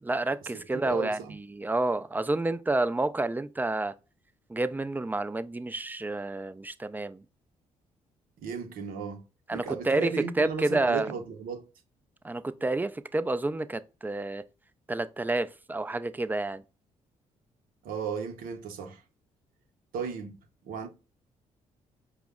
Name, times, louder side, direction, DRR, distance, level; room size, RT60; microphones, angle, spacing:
voice 1, 0.0-3.9 4.5-7.2 9.5-10.1 10.4-11.1 12.2-14.4 14.9-16.6, right 2 dB, 10° right, 0.4 m, -29 dB
voice 2, 0.8-1.4 8.4-9.2 9.5-11.6 17.8-19.0 19.9-20.3 20.6-20.9, right 6 dB, 70° right, 0.8 m, -35 dB
4.9 x 2.0 x 3.6 m
hypercardioid pair, 50°, 15 cm